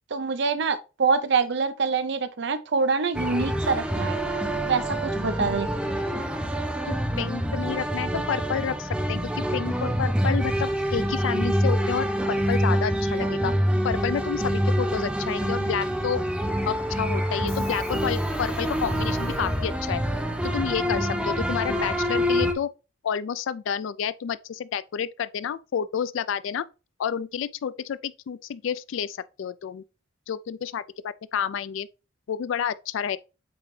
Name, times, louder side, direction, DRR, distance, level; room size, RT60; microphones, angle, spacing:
voice 1, 0.1-4.2 4.7-5.7, right 4 dB, 55° right, 0.6 m, -25 dB
sound 1, 3.1-22.5, equal, 5° right, 0.8 m, -26 dB
voice 2, 6.9-13.6 13.8-16.2 16.7-20.0 20.5-22.7 23.0-26.7 27.0-29.8 30.3-31.9 32.3-33.2, left 7 dB, 70° left, 0.3 m, -30 dB
Subway metro underground, 13.9-21.3, left 1 dB, 45° left, 1.7 m, -42 dB
8.4 x 3.9 x 3.2 m
head